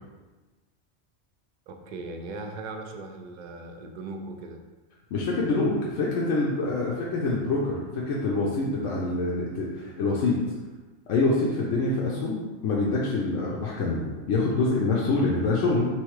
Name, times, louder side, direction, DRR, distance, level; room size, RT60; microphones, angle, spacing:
voice 1, 1.7-4.6, right 2 dB, 60° right, 4 dB, 0.5 m, -38 dB
voice 2, 5.1-10.4 11.1-15.9, left 3 dB, 80° left, -4 dB, 1.0 m, -26 dB
3.5 x 3.2 x 4.7 m, 1.3 s
omnidirectional pair, 1.3 m